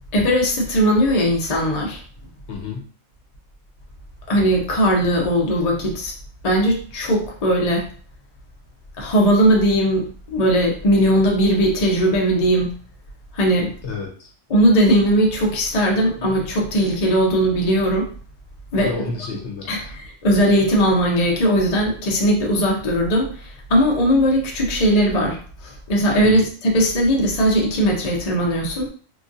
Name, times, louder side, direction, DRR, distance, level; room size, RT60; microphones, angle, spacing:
voice 1, 0.1-2.0 4.3-6.1 6.4-7.9 9.0-12.7 13.3-13.7 14.5-18.1 18.7-18.9 19.7-28.9, equal, 40° left, -1 dB, 0.5 m, -19 dB
voice 2, 2.5-2.8 13.8-14.3 18.8-19.9 26.2-26.4, left 4 dB, 60° left, 0 dB, 1.0 m, -31 dB
3.0 x 2.5 x 2.5 m, 0.43 s
omnidirectional pair, 1.4 m